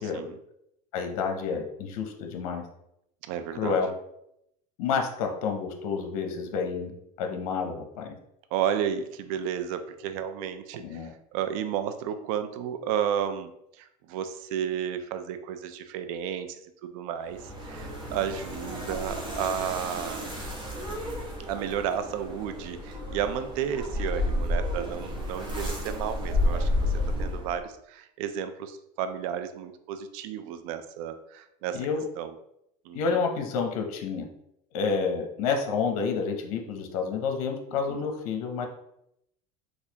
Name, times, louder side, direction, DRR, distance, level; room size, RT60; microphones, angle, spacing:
voice 1, 0.9-2.6 3.6-3.9 4.8-6.9 7.2-8.2 10.8-11.1 31.7-32.0 32.9-34.3 34.7-38.7, left 5 dB, 80° left, 4 dB, 0.7 m, -29 dB
voice 2, 3.3-3.8 8.5-11.0 11.3-13.5 13.8-16.5 16.8-17.4 17.6-20.3 21.5-26.9 27.2-31.9 32.2-32.3 32.9-33.0 37.9-38.0, right 8 dB, 75° right, 10 dB, 0.4 m, -32 dB
sound 1, 17.3-27.7, left 1 dB, 25° right, 1.0 m, -31 dB
4.1 x 2.4 x 2.8 m, 0.79 s
supercardioid pair, 120°, 18 cm